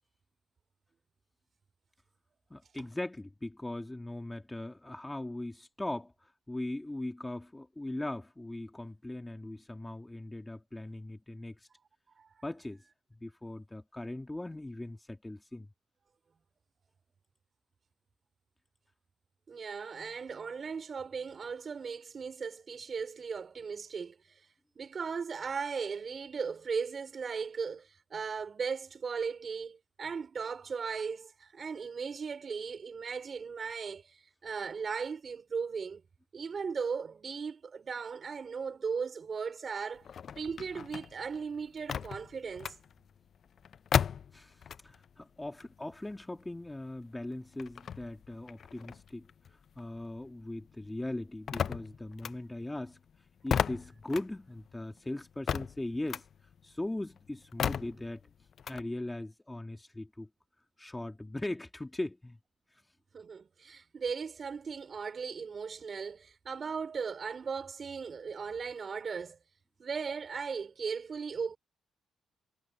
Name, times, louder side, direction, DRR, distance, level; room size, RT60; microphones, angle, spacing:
voice 1, 2.5-11.7 12.4-12.8 13.2-15.7 44.3-49.3 49.8-53.0 53.4-56.2 56.6-58.2 58.7-60.3 60.8-62.4, left 1 dB, 10° left, 2.4 m, -39 dB
voice 2, 19.5-24.1 24.7-36.0 36.3-40.0 40.4-42.8 63.1-69.4 69.8-71.6, right 5 dB, 40° right, 4.8 m, -37 dB
sound 1, 40.0-45.1 45.4-50.3 50.6-58.8, left 8 dB, 55° left, 0.4 m, -36 dB
cardioid pair, 90°, 0 cm